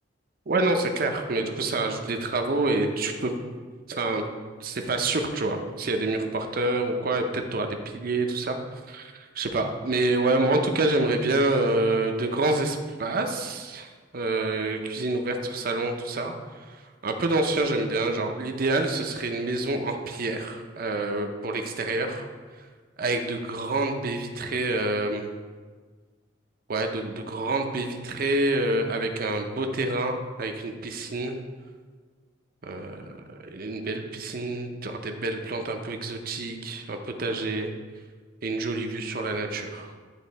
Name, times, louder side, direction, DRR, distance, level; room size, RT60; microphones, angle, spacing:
voice 1, 0.5-3.3 3.9-4.2 4.6-8.6 8.9-16.3 17.0-22.3 23.0-25.3 26.7-31.4 32.6-37.7 38.4-39.9, right 2 dB, 55° right, 5 dB, 0.7 m, -27 dB
10.0 x 3.6 x 4.2 m, 1.5 s
head